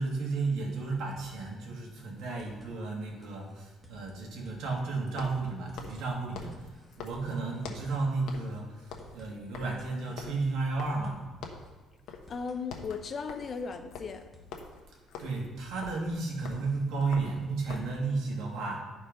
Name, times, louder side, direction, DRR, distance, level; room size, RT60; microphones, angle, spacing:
voice 1, 0.0-6.6 7.0-11.2 15.2-18.8, right 3 dB, 80° right, 0 dB, 1.8 m, -33 dB
sound 1, 1.0-1.5 1.8-1.9 2.2-2.7 3.2-4.8 5.1-5.2 5.5-6.0 6.5-8.1 8.4-8.5 8.8-9.3 9.8-11.4 11.7-11.8 12.1-12.6 13.1-14.7 14.9-15.0 15.4-15.9 16.4-17.4, left 1 dB, 5° right, 1.0 m, -57 dB
sound 2, 5.1-8.0 8.3-8.6 8.8-11.2 11.4-11.7 12.1-12.3 12.6-18.0, left 5 dB, 80° left, 1.0 m, -45 dB
voice 2, 12.3-14.3, left 5 dB, 30° left, 8 dB, 0.5 m, -36 dB
11.0 x 4.5 x 5.1 m, 1.2 s
cardioid pair, 170°, 0 cm